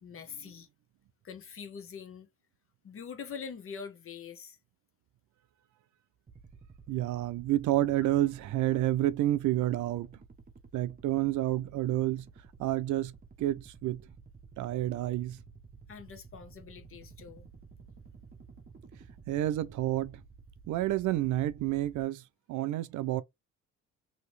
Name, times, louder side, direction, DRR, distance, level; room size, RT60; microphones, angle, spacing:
voice 1, 0.0-0.7 1.2-2.3 2.8-4.6 15.9-17.5, left 6 dB, 45° left, 0.9 m, -44 dB
sound 1, 6.3-22.0, right 4 dB, 30° right, 0.7 m, -53 dB
voice 2, 6.9-10.1 10.7-12.3 12.6-13.1 13.4-14.0 14.6-15.4 19.3-20.2 20.7-22.2 22.5-23.2, right 14 dB, 75° right, 0.5 m, -29 dB
2.8 x 2.8 x 3.1 m
cardioid pair, 90°, 30 cm